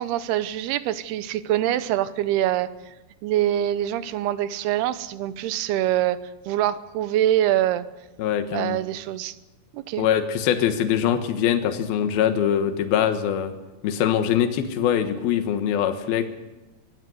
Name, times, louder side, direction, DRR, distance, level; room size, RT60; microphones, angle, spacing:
voice 1, 0.0-2.7 3.2-6.2 6.5-7.9 8.5-9.3 9.7-10.1, right 12 dB, 85° right, 14 dB, 2.9 m, -24 dB
voice 2, 8.2-8.8 10.0-13.5 13.8-16.3, left 9 dB, 75° left, 9 dB, 3.2 m, -23 dB
23.0 x 15.5 x 7.9 m, 1.1 s
omnidirectional pair, 4.5 m